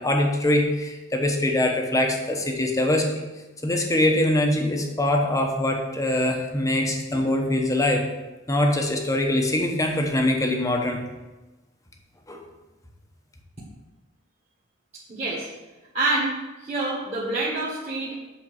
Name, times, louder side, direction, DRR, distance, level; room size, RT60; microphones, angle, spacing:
voice 1, 0.0-3.2 3.6-8.0 8.5-11.0 12.3-12.4, left 1 dB, 15° left, 2 dB, 0.9 m, -23 dB
voice 2, 15.1-15.5 15.9-16.3 16.6-18.2, right 2 dB, 30° right, -8 dB, 1.6 m, -26 dB
7.6 x 4.4 x 6.2 m, 1.1 s
head